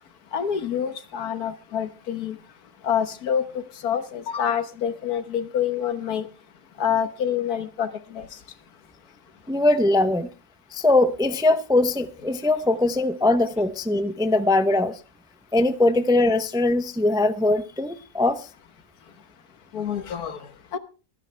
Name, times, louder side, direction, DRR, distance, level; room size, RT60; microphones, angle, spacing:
voice 1, 0.3-2.4 2.8-6.3 6.8-8.4 19.7-20.8, left 8 dB, 85° left, 1.7 m, -27 dB
voice 2, 9.5-10.3 10.7-15.0 15.5-18.5, left 2 dB, 5° right, 0.4 m, -21 dB
24.5 x 9.6 x 3.3 m
omnidirectional pair, 1.6 m